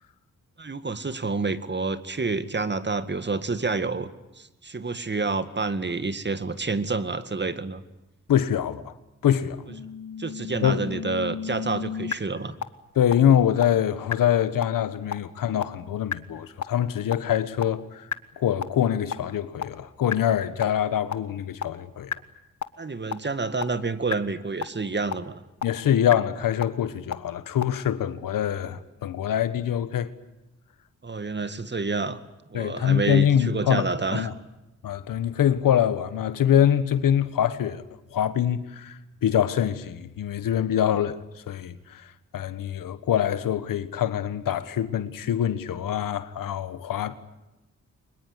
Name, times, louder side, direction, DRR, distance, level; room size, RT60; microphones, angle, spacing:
voice 1, 0.6-4.1 4.4-7.8 10.2-12.6 22.8-25.4 31.0-32.2 32.5-34.3, right 3 dB, 35° right, 2.0 m, -28 dB
voice 2, 8.3-8.9 9.2-9.6 10.6-10.8 12.9-18.1 18.4-22.1 25.6-30.1 32.5-34.3 34.8-37.8 38.1-41.2 41.5-47.2, left 10 dB, 85° left, 1.5 m, -24 dB
sound 1, 9.7-12.1 12.6-12.7 13.1-13.2 13.6-13.7 14.1-14.2 14.6-14.7 15.1-15.2 15.6-15.7 16.1-16.2 16.6-16.7 17.1-17.2 17.6-17.7 18.1-18.2 18.6-18.7 19.1-19.2 19.6-19.7 20.1-20.2 20.6-20.7 21.1-21.2 21.6-21.7 22.1-22.2 22.6-22.7 23.1-23.2 23.6-23.7 24.1-24.2 24.6-24.7 25.1-25.2 25.6-25.7 26.1-26.2 26.6-26.7 27.1-27.2 27.6-27.7, left 7 dB, 60° left, 1.5 m, -29 dB
24.0 x 21.0 x 9.8 m
cardioid pair, 55°, 32 cm